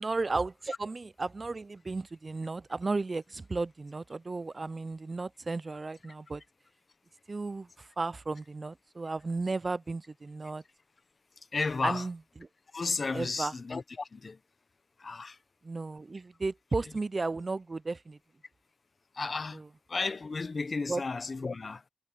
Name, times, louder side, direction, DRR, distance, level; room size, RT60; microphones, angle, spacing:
voice 1, 0.0-6.4 7.3-10.6 11.8-12.2 13.1-13.5 15.6-18.2 19.5-19.6 20.9-21.0, right 3 dB, 30° right, 0.4 m, -34 dB
voice 2, 11.5-12.1 12.7-14.4 15.0-15.4 19.1-19.6 19.9-21.8, left 4 dB, 40° left, 0.9 m, -33 dB
wide cardioid pair, 100°, 0 cm